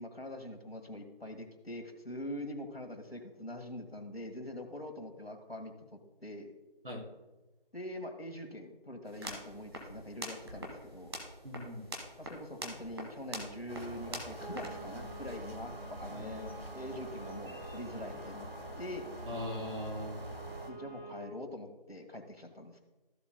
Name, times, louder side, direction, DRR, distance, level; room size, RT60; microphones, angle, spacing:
voice 1, 0.0-6.5 7.7-11.1 12.2-18.5 18.8-19.1 20.7-22.8, left 1 dB, 90° left, 5 dB, 1.7 m, -44 dB
sound 1, 9.1-15.4, right 1 dB, 25° right, 1.3 m, -45 dB
voice 2, 11.4-11.9 16.1-16.3 19.3-20.5, left 1 dB, 70° right, -1 dB, 3.2 m, -40 dB
sound 2, 13.7-20.7, right 1 dB, 85° right, 1.4 m, -46 dB
sound 3, 14.4-21.2, right 2 dB, 20° left, 1.2 m, -49 dB
14.5 x 7.1 x 2.2 m, 1.1 s
figure-of-eight pair, 160°, 29 cm